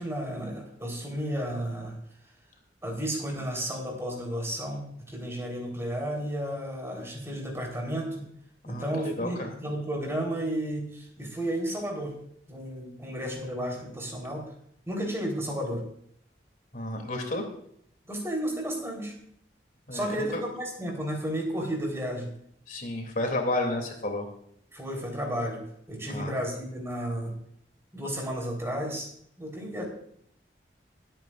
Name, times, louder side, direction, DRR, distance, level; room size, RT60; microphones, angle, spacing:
voice 1, 0.0-1.9 2.8-8.3 8.7-12.2 12.5-14.5 14.9-15.8 18.1-19.1 19.9-22.3 24.7-27.4 27.9-29.1 29.4-29.8, right 1 dB, 15° right, 0 dB, 3.9 m, -32 dB
voice 2, 8.7-9.5 16.7-17.4 19.9-20.4 22.7-24.3 26.1-26.3, left 2 dB, 50° left, 3 dB, 2.9 m, -31 dB
23.5 x 9.1 x 2.5 m, 0.67 s
head